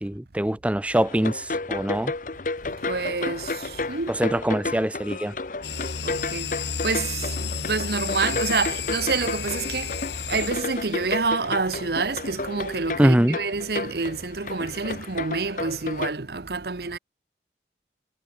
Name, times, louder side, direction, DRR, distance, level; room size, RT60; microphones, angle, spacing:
voice 1, 0.0-2.1 4.1-5.3 13.0-13.4, right 1 dB, 5° right, 0.4 m, -23 dB
sound 1, 0.9-16.1, left 3 dB, 45° left, 0.9 m, -32 dB
voice 2, 2.8-4.2 6.0-10.0 10.3-17.0, right 4 dB, 60° right, 1.0 m, -28 dB
sound 2, 5.6-11.1, left 6 dB, 75° left, 2.5 m, -32 dB
head